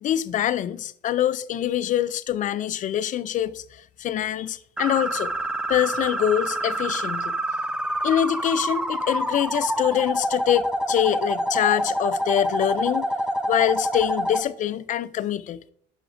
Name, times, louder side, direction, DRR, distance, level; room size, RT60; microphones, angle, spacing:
voice 1, 0.0-5.3 5.7-7.4 8.0-13.1 13.5-15.6, left 11 dB, 50° left, 0.4 m, -24 dB
sound 1, 4.8-14.4, equal, 5° right, 0.5 m, -27 dB
11.0 x 5.8 x 2.6 m
cardioid pair, 110°, 17 cm